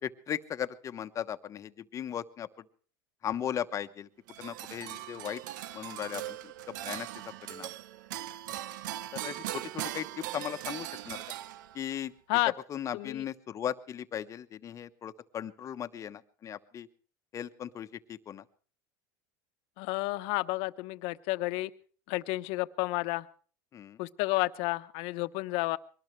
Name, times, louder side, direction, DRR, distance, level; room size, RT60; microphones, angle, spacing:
voice 1, 0.0-2.5 3.2-4.1 4.4-5.4 5.7-7.1 7.5-7.7 9.2-10.1 10.3-11.2 11.7-12.1 12.7-16.9 17.3-18.4 23.7-24.0, left 9 dB, 30° left, 10 dB, 1.1 m, -37 dB
sound 1, 4.3-12.0, right 13 dB, 80° right, 0.8 m, -40 dB
voice 2, 12.9-13.2 19.8-21.7 22.1-23.3 24.0-25.8, left 21 dB, 60° left, 12 dB, 1.0 m, -31 dB
23.0 x 18.5 x 3.3 m, 0.42 s
supercardioid pair, 120°, 10 cm